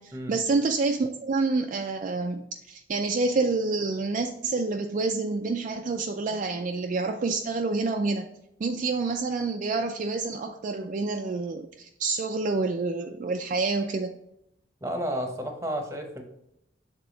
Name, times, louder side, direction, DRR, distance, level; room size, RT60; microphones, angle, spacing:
voice 1, 0.0-8.3 8.6-14.1, right 3 dB, 45° right, 4 dB, 0.3 m, -28 dB
voice 2, 14.8-16.2, equal, 15° right, 4 dB, 0.9 m, -31 dB
6.9 x 3.7 x 3.8 m, 0.79 s
head